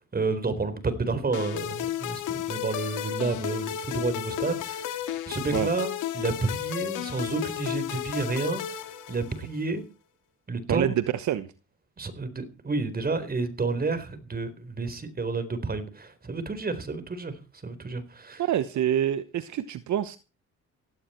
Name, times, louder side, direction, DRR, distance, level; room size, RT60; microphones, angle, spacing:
voice 1, 0.1-5.0 5.3-8.8 9.1-9.8 10.5-11.0 12.0-17.3 17.6-18.4, right 3 dB, 30° right, 4.1 m, -30 dB
sound 1, 1.3-9.6, left 11 dB, 85° left, 2.1 m, -33 dB
voice 2, 10.7-11.5 18.4-20.2, right 11 dB, 70° right, 1.1 m, -26 dB
16.5 x 16.0 x 4.4 m
cardioid pair, 90°, 30 cm